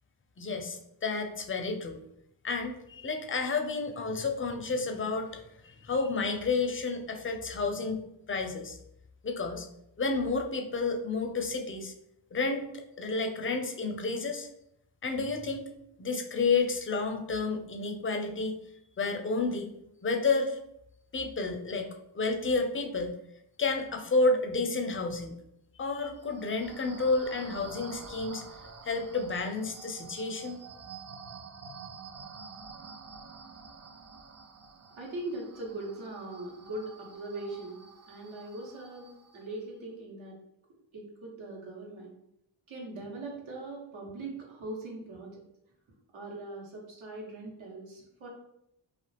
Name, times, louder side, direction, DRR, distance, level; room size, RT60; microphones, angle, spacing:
voice 1, 0.4-2.0 2.4-8.0 8.3-8.8 9.2-9.7 10.0-11.9 12.3-14.5 15.0-15.7 16.0-18.5 19.0-19.7 20.0-20.6 21.1-23.1 23.6-25.4 25.8-28.4 28.8-30.6, left 3 dB, 25° left, 5 dB, 0.4 m, -30 dB
sound 1, 26.2-39.6, right 5 dB, 35° right, 0.5 m, -48 dB
voice 2, 35.0-37.8 38.1-40.3 40.9-42.1 42.7-45.4 46.1-48.3, right 2 dB, 70° right, -2 dB, 1.1 m, -41 dB
2.4 x 2.3 x 3.2 m, 0.79 s
cardioid pair, 50°, 48 cm